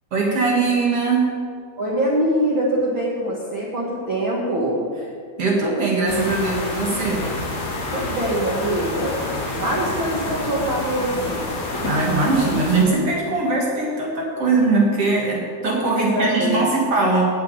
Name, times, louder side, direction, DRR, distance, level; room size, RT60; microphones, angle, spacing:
voice 1, 0.1-1.4 5.4-7.4 11.8-17.2, right 3 dB, 55° right, -3 dB, 1.7 m, -20 dB
voice 2, 1.8-4.9 7.9-9.2 9.6-11.5 15.9-16.7, right 1 dB, 85° right, -5 dB, 1.1 m, -23 dB
sound 1, 6.1-12.8, left 2 dB, 50° left, 2.6 m, -28 dB
10.0 x 8.6 x 8.8 m, 2.3 s
omnidirectional pair, 5.0 m